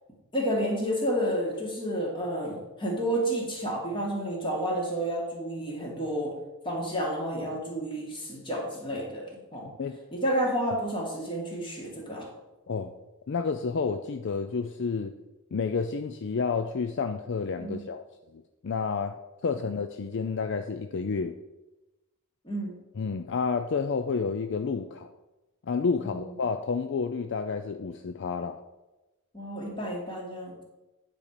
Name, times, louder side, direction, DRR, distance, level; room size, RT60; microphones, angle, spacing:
voice 1, 0.3-6.3 6.6-9.7 10.1-12.3 17.6-17.8 22.4-22.8 26.0-26.3 29.3-30.6, equal, 20° left, -2 dB, 2.3 m, -30 dB
voice 2, 13.3-15.1 15.5-18.0 18.3-21.3 23.0-25.1 25.6-28.6, left 5 dB, 55° left, 8 dB, 0.4 m, -30 dB
9.7 x 4.4 x 6.8 m, 1.0 s
head